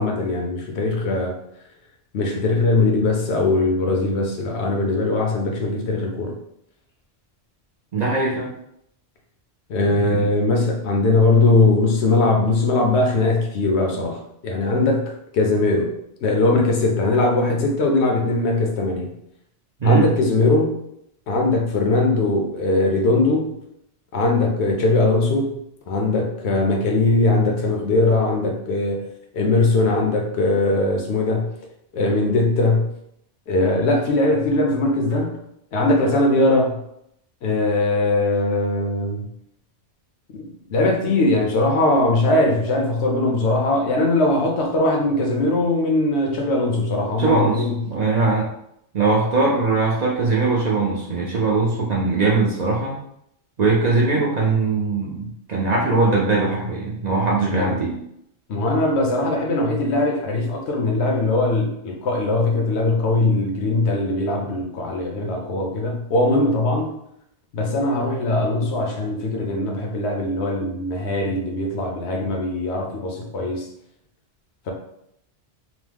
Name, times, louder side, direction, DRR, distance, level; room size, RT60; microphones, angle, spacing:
voice 1, 0.0-1.4 2.1-6.3 9.7-15.9 16.2-19.1 19.8-20.8 21.3-23.6 24.1-25.6 25.9-29.0 29.3-31.5 31.9-32.9 33.5-35.4 35.7-36.8 37.4-39.3 40.3-47.8 57.5-57.7 58.5-66.9 67.5-73.7, left 2 dB, 75° left, 1 dB, 0.9 m, -20 dB
voice 2, 7.9-8.5 9.9-10.3 19.8-20.1 47.2-48.5 48.9-53.0 53.6-57.9, right 3 dB, 50° right, -4 dB, 0.5 m, -21 dB
3.0 x 2.0 x 3.3 m, 0.76 s
omnidirectional pair, 1.2 m